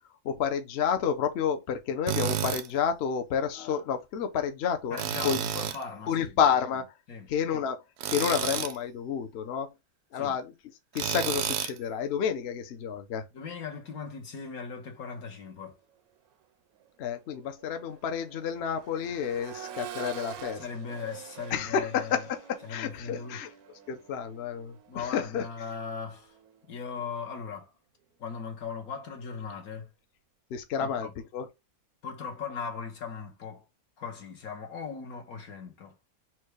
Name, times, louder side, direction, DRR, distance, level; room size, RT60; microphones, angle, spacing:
voice 1, 0.2-5.4 6.1-6.9 7.3-7.8 8.1-9.7 10.1-10.5 10.9-13.2 17.0-20.7 21.5-23.5 23.9-25.5 30.5-31.5, left 7 dB, 60° left, 0.7 m, -30 dB
Tools, 2.1-2.7 5.0-5.8 8.0-8.8 10.9-11.8, right 9 dB, 65° right, 0.7 m, -30 dB
voice 2, 4.9-6.4 7.1-7.3 10.1-10.4 13.3-15.8 20.5-22.3 22.6-23.4 24.9-26.4 26.7-27.7 28.2-29.9 30.8-31.1 32.0-33.6 34.0-36.0, left 5 dB, 75° left, 1.5 m, -38 dB
Accelerating revving vroom, 16.2-16.3 16.8-26.7 28.4-28.5, right 9 dB, 85° right, 1.1 m, -47 dB
4.4 x 2.2 x 4.7 m
omnidirectional pair, 1.6 m